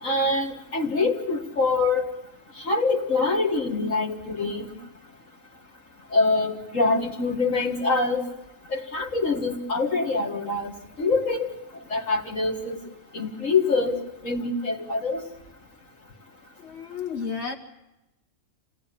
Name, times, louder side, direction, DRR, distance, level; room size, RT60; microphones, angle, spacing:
voice 1, 0.0-2.1 2.6-4.7 6.1-8.2 8.7-10.7 11.0-11.5 11.9-12.8 13.1-14.0 14.2-15.2, left 3 dB, 70° left, -2 dB, 2.1 m, -24 dB
voice 2, 16.6-17.5, left 6 dB, 50° left, 2 dB, 2.5 m, -32 dB
28.0 x 18.0 x 8.5 m, 0.96 s
omnidirectional pair, 1.4 m